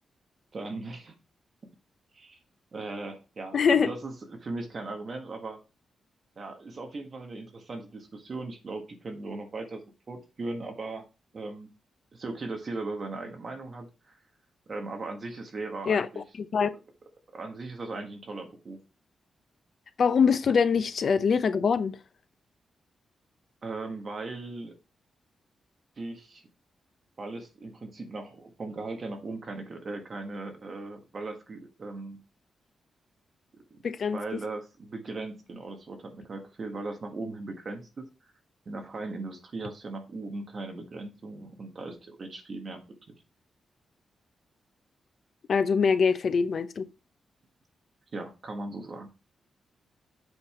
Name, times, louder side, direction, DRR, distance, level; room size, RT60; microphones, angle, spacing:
voice 1, 0.5-1.1 2.1-2.4 2.7-5.6 6.4-11.0 11.3-11.7 12.1-14.2 14.7-16.2 17.3-18.8 23.6-24.7 26.0-26.5 27.2-32.2 33.7-33.8 34.1-38.0 38.6-42.8 48.1-49.1, right 3 dB, 40° right, 1.5 m, -38 dB
voice 2, 3.5-3.9 15.9-16.7 20.0-22.0 33.8-34.4 45.5-46.9, left 6 dB, 50° left, 0.8 m, -24 dB
8.0 x 5.5 x 4.3 m
wide cardioid pair, 150°, 0 cm